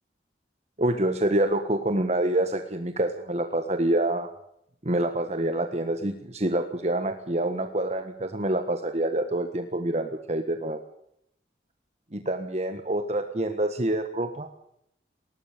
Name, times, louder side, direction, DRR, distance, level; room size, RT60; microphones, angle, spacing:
voice 1, 0.8-4.3 4.8-10.8 12.1-14.5, right 1 dB, 40° right, 7 dB, 1.5 m, -27 dB
21.0 x 18.5 x 6.8 m, 0.74 s
head